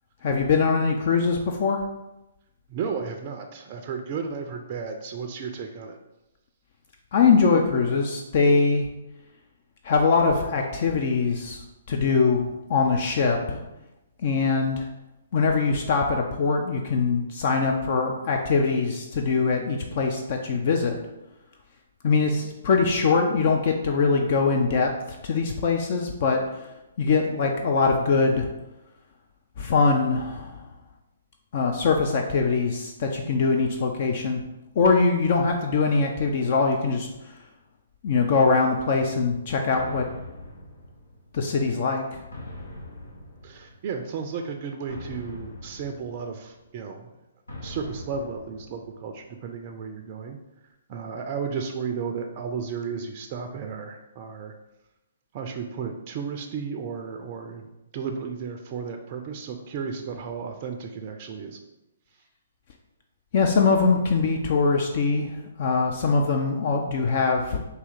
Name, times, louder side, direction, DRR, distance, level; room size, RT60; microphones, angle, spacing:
voice 1, 0.2-1.8 7.1-8.9 9.8-13.6 14.2-14.9 15.3-21.0 22.0-24.9 25.2-26.4 27.0-28.5 29.6-30.6 31.5-34.4 34.8-37.1 38.0-40.0 41.3-42.2 63.3-67.6, left 4 dB, 50° left, 3 dB, 0.4 m, -22 dB
voice 2, 2.7-6.0 43.4-47.1 47.6-50.4 50.9-54.5 55.3-61.6, right 6 dB, 40° right, 4 dB, 0.4 m, -34 dB
sound 1, 39.7-41.5 42.3-44.0 44.9-46.7 47.5-49.3, left 1 dB, 80° left, 1.1 m, -42 dB
4.1 x 2.7 x 3.9 m, 0.95 s
figure-of-eight pair, 125°, 0 cm